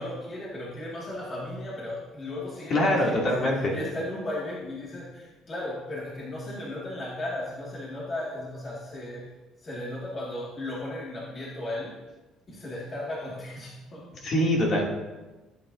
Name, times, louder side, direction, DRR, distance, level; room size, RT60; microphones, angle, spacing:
voice 1, 0.0-9.2 9.6-11.9 12.5-14.1, left 1 dB, 35° left, -5 dB, 2.2 m, -36 dB
voice 2, 2.7-3.8 14.2-14.9, left 1 dB, 50° left, -2 dB, 2.7 m, -23 dB
15.5 x 8.9 x 2.7 m, 1.2 s
cardioid pair, 120°, 0 cm